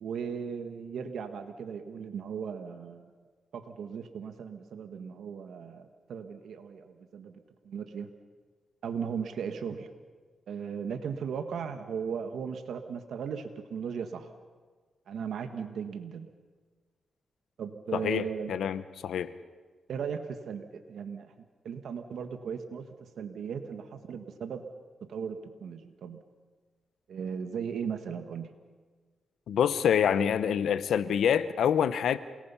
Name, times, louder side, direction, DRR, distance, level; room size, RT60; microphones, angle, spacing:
voice 1, 0.0-3.1 3.5-7.3 7.6-8.1 8.8-9.9 10.5-14.3 15.1-16.3 17.6-18.5 19.9-21.3 21.6-24.6 25.1-26.2 27.1-28.5, right 7 dB, 80° right, 1.4 m, -37 dB
voice 2, 17.9-19.3 29.5-32.2, left 8 dB, 85° left, 0.8 m, -26 dB
28.0 x 18.5 x 5.7 m
cardioid pair, 80°, 0 cm